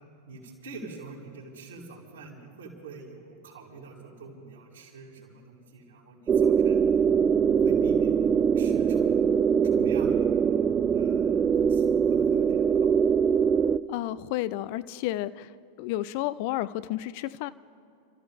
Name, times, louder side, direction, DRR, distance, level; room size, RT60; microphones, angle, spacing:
voice 1, 0.3-6.8 7.5-8.3 8.5-9.2 9.6-10.3 10.9-13.0, right 3 dB, 65° right, -3 dB, 3.6 m, -46 dB
sound 1, 6.3-13.8, right 7 dB, 25° right, 0.4 m, -22 dB
voice 2, 13.9-15.5 15.8-17.5, left 15 dB, 45° left, 16 dB, 0.4 m, -31 dB
30.0 x 14.0 x 3.5 m, 2.6 s
figure-of-eight pair, 90°, 0 cm